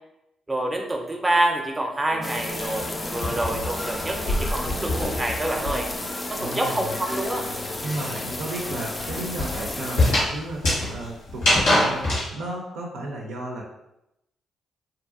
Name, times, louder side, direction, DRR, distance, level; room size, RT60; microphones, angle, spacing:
voice 1, 0.5-5.9 6.3-7.5, right 1 dB, 20° right, 3 dB, 0.6 m, -27 dB
sound 1, 2.1-12.0, equal, 65° left, 0.8 m, -41 dB
sound 2, 2.2-10.1, left 2 dB, 25° left, 0.4 m, -33 dB
sound 3, 2.4-6.1 6.4-12.3, left 1 dB, 85° left, 1.2 m, -26 dB
voice 2, 6.4-7.0 7.8-12.1 12.3-13.6, right 1 dB, 75° right, -1 dB, 0.4 m, -33 dB
2.6 x 2.6 x 2.4 m, 0.86 s
hypercardioid pair, 45°, 0 cm